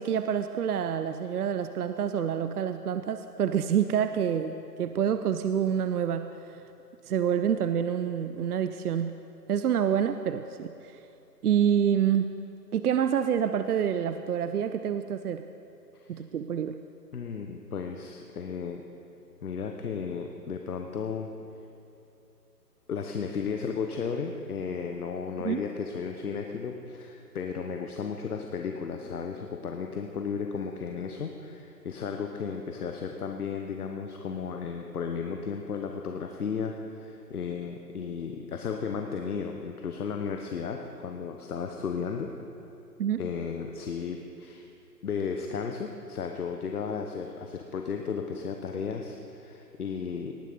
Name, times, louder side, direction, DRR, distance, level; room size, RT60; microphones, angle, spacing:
voice 1, 0.0-6.3 7.1-9.1 9.5-11.0 11.4-12.3 12.7-15.4 16.1-16.7 25.4-25.6 43.0-43.2, right 8 dB, 65° right, 10 dB, 0.5 m, -27 dB
voice 2, 17.1-18.8 19.4-21.3 22.9-42.3 43.2-44.7 45.0-50.3, left 6 dB, 65° left, 4 dB, 1.0 m, -34 dB
18.5 x 6.4 x 5.1 m, 2.8 s
hypercardioid pair, 160°, 49 cm